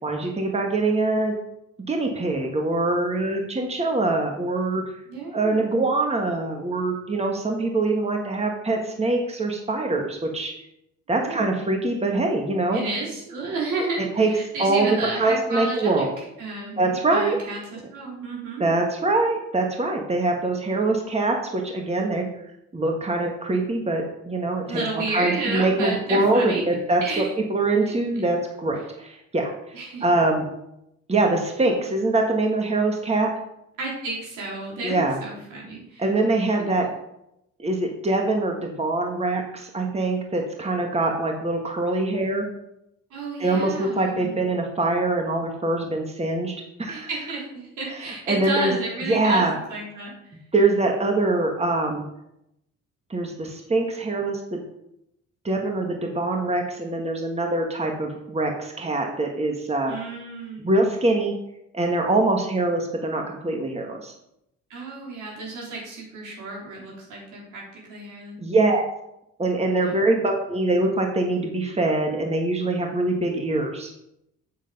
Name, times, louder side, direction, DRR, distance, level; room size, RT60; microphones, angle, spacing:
voice 1, 0.0-1.4 1.9-4.8 5.3-10.5 11.1-12.8 14.0-14.3 14.6-16.1 16.8-17.4 18.6-22.3 22.7-24.8 25.1-29.5 30.0-30.4 31.1-33.3 34.8-35.2 36.0-36.9 37.6-42.4 43.4-46.5 46.8-47.1 48.0-48.7 49.0-49.5 50.5-52.0 53.1-54.6 55.4-59.9 60.6-61.3 61.7-64.1 68.4-68.8 69.4-73.9, right 2 dB, 20° right, 2 dB, 1.5 m, -23 dB
voice 2, 5.1-5.6 11.2-11.5 12.7-16.1 16.4-18.7 24.7-26.8 27.0-27.3 29.7-30.1 33.8-36.0 36.6-36.7 43.1-44.4 46.9-50.1 59.9-60.7 64.7-68.4 69.8-70.1, right 3 dB, 85° right, -3 dB, 3.9 m, -32 dB
7.5 x 6.4 x 5.3 m, 0.81 s
cardioid pair, 90°, 30 cm